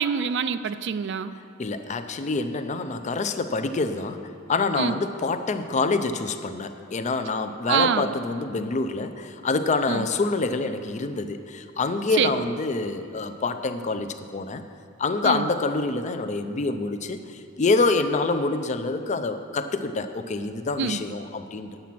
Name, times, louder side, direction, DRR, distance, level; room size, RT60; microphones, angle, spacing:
voice 1, 0.0-1.3 4.8-5.0 7.7-8.1 9.9-10.1 12.2-12.3 15.2-15.5 20.8-21.0, right 7 dB, 60° right, 13 dB, 0.4 m, -25 dB
voice 2, 1.3-14.6 15.0-21.8, left 3 dB, 35° left, 9 dB, 0.4 m, -26 dB
8.9 x 8.2 x 5.9 m, 2.6 s
head